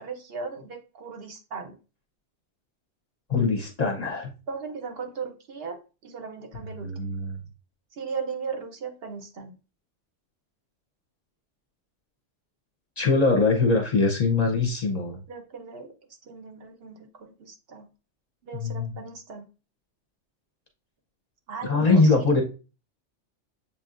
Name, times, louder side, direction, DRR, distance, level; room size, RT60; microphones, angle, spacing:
voice 1, 0.0-1.8 4.5-7.1 7.9-9.5 15.3-15.9 16.2-17.9 18.4-19.5 21.5-22.4, right 5 dB, 60° right, 4 dB, 0.9 m, -37 dB
voice 2, 3.3-4.3 6.8-7.4 13.0-15.2 18.5-19.0 21.6-22.4, left 3 dB, 40° left, 1 dB, 0.8 m, -22 dB
7.1 x 2.8 x 2.4 m, 0.33 s
omnidirectional pair, 1.2 m